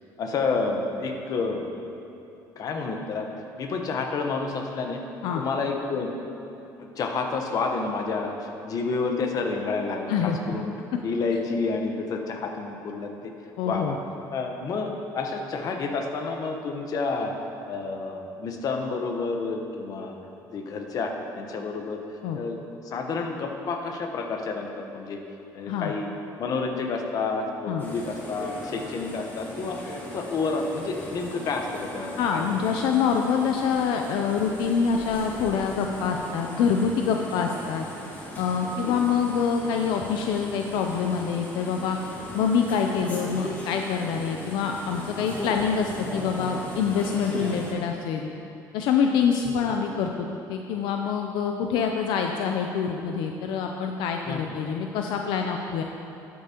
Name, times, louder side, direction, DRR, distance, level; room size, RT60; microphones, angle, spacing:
voice 1, 0.2-1.7 2.6-3.3 3.6-5.0 5.3-6.1 6.8-10.7 11.0-13.3 13.6-14.0 14.3-17.4 17.7-20.2 20.5-22.0 22.3-22.6 22.8-25.2 25.5-26.1 26.4-32.5 37.3-37.4 38.8-39.0 45.3-45.4 49.5-49.7 54.3-54.6, left 4 dB, 55° left, 3 dB, 1.0 m, -29 dB
voice 2, 13.6-14.0 22.2-22.4 25.7-25.9 27.7-27.8 32.2-37.9 38.4-42.0 42.3-48.3 48.7-55.8, left 6 dB, 85° left, 3 dB, 0.5 m, -26 dB
sound 1, 27.8-47.7, equal, 25° left, 2.0 m, -38 dB
12.5 x 8.3 x 2.9 m, 2.8 s
cardioid pair, 110°, 8 cm